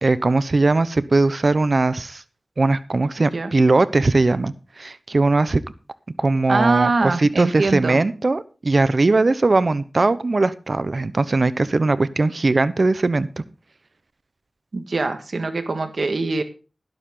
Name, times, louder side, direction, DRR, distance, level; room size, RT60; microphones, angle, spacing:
voice 1, 0.0-2.2 2.6-5.6 6.2-13.3, right 3 dB, 60° right, 15 dB, 1.0 m, -19 dB
voice 2, 6.5-8.0 14.7-16.4, right 3 dB, 75° right, 8 dB, 1.8 m, -23 dB
12.0 x 11.5 x 3.8 m, 0.33 s
cardioid pair, 45°, 0 cm